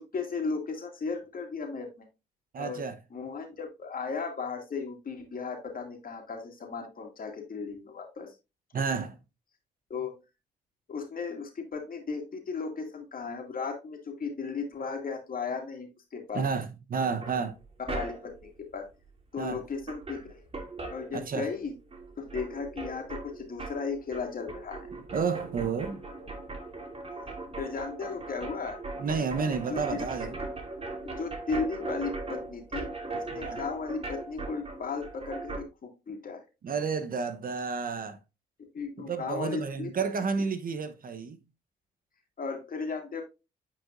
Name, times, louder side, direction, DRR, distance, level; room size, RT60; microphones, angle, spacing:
voice 1, 0.0-2.1 2.6-8.3 9.9-10.2 10.9-16.5 17.8-18.9 19.3-20.4 20.9-21.7 22.2-24.9 27.6-28.8 29.7-29.8 31.0-36.4 38.7-39.9 42.4-43.2, left 4 dB, 45° left, 2.4 m, -36 dB
voice 2, 2.5-3.0 8.7-9.2 16.3-17.6 19.4-19.6 21.1-21.5 25.1-26.0 29.0-30.4 33.3-33.6 36.6-38.2 39.0-41.4, right 5 dB, 50° right, 0.9 m, -31 dB
sound 1, 17.2-18.5 19.5-19.6 19.8-21.6 21.9-35.7, right 3 dB, 30° right, 2.5 m, -39 dB
9.0 x 4.9 x 2.5 m
supercardioid pair, 55°, 19 cm